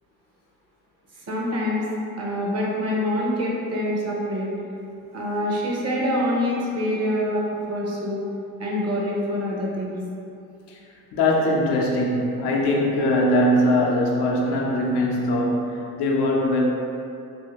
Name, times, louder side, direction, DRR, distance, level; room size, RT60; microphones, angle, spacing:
voice 1, 1.1-1.9 2.2-4.5 5.1-8.2 8.6-9.9, left 1 dB, 40° right, -4 dB, 0.8 m, -25 dB
voice 2, 11.1-16.6, left 1 dB, 80° left, -2 dB, 0.6 m, -21 dB
2.7 x 2.7 x 2.9 m, 2.6 s
cardioid pair, 80°, 40 cm